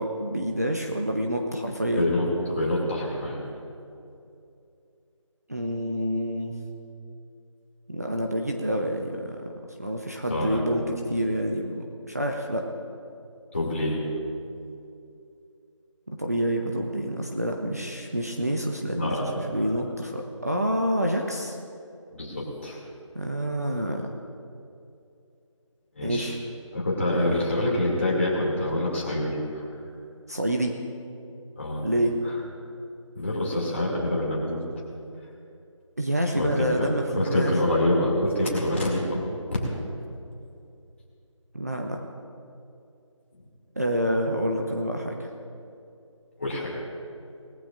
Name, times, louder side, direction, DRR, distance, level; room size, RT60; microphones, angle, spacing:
voice 1, 0.0-2.1 5.5-6.5 7.9-9.5 9.8-12.6 16.1-21.6 23.1-24.1 26.0-26.4 30.3-30.7 31.8-32.2 36.0-37.5 41.5-42.0 43.8-45.3, equal, 30° right, 1 dB, 0.7 m, -27 dB
voice 2, 1.9-3.4 10.3-10.6 13.5-14.0 18.9-19.3 22.1-22.8 25.9-26.3 26.7-29.7 31.6-31.9 32.2-32.3 33.1-34.6 36.3-36.9 37.1-39.6 46.4-46.7, left 1 dB, 25° left, -5 dB, 2.6 m, -26 dB
20.5 x 14.5 x 2.6 m, 2.6 s
figure-of-eight pair, 175°, 17 cm